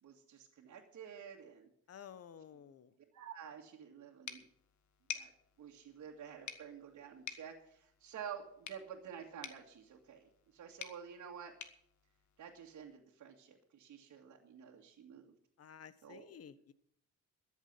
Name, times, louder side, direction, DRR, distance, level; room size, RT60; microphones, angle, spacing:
voice 1, 0.0-1.7 3.1-4.5 5.1-5.3 5.6-11.5 12.4-15.3 16.0-16.3, right 8 dB, 70° right, -2 dB, 2.1 m, -50 dB
voice 2, 1.9-2.9 15.6-16.7, left 8 dB, 55° left, 15 dB, 1.2 m, -53 dB
sound 1, 4.3-12.9, left 9 dB, 70° left, 1.7 m, -51 dB
13.0 x 7.3 x 9.6 m, 0.69 s
cardioid pair, 90°, 30 cm